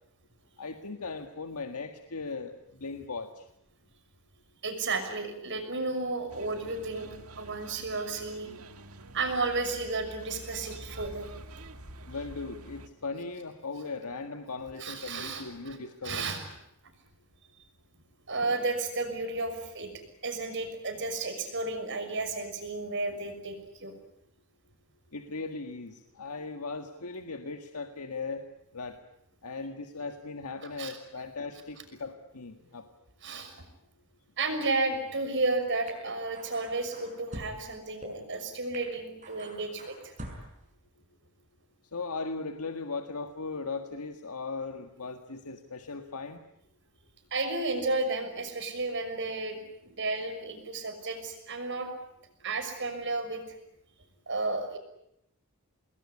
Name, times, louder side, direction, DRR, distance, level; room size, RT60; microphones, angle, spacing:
voice 1, 0.6-3.5 12.1-16.3 25.1-28.5 28.7-29.0 29.4-32.9 41.9-46.4, left 4 dB, 90° left, 6 dB, 1.7 m, -38 dB
voice 2, 4.6-7.1 7.4-8.5 9.1-11.3 14.8-15.8 16.0-16.4 18.3-19.9 20.2-23.9 30.6-30.9 33.2-33.6 34.4-40.1 47.3-51.9 52.4-53.5 54.3-54.8, right 3 dB, 55° right, 6 dB, 6.1 m, -32 dB
sound 1, 6.3-12.9, right 2 dB, 75° right, 1.8 m, -47 dB
sound 2, 35.9-36.0 36.4-37.5 38.0-38.1 38.7-38.8 39.2-40.5, right 1 dB, 35° right, 6.6 m, -44 dB
27.5 x 20.5 x 9.8 m, 0.79 s
head